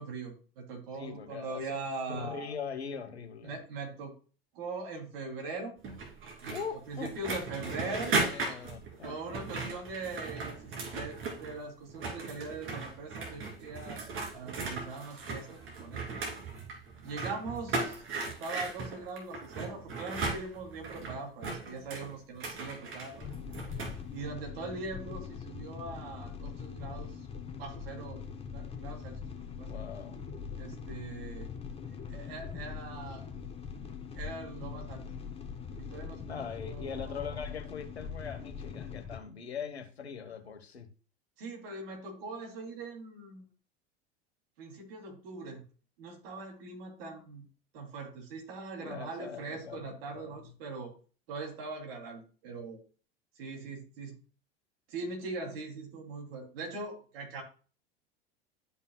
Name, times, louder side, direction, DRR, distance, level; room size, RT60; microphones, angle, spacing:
voice 1, 0.0-2.5 3.4-4.1 4.5-5.8 6.4-6.6 6.9-8.2 9.0-16.2 17.0-23.3 24.1-27.3 27.6-28.2 28.5-29.2 29.6-29.9 30.6-31.5 31.9-33.3 34.2-35.0 35.8-37.4 41.4-43.4 44.6-45.6 46.0-47.4 47.7-50.9 51.3-52.8 53.4-54.2 54.9-57.4, right 3 dB, 65° right, 2.8 m, -41 dB
voice 2, 0.9-1.8 2.1-3.6 6.5-9.2 29.7-30.2 36.3-40.9 48.8-50.5, left 6 dB, 90° left, 1.1 m, -42 dB
sound 1, 5.8-11.6 11.9-24.0, right 3 dB, 40° right, 2.8 m, -37 dB
sound 2, 23.2-39.2, left 6 dB, 20° left, 1.4 m, -42 dB
12.5 x 5.5 x 2.2 m
hypercardioid pair, 80°, 31 cm